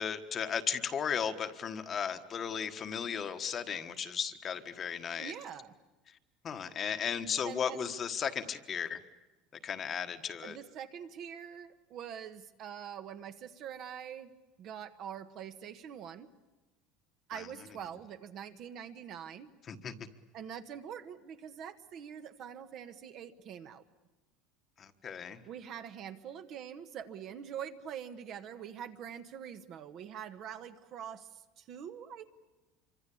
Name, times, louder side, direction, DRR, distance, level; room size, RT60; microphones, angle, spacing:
voice 1, 0.0-5.3 6.1-6.2 6.4-9.0 9.6-10.6 17.3-17.5 19.7-19.9 24.8-25.4, left 7 dB, 25° left, 8 dB, 1.4 m, -35 dB
voice 2, 5.2-5.7 7.4-7.9 10.4-14.3 14.6-16.3 17.3-19.5 20.3-23.8 25.5-32.2, right 8 dB, 40° right, 9 dB, 1.2 m, -44 dB
27.0 x 25.0 x 8.5 m, 1.1 s
cardioid pair, 175°, 0 cm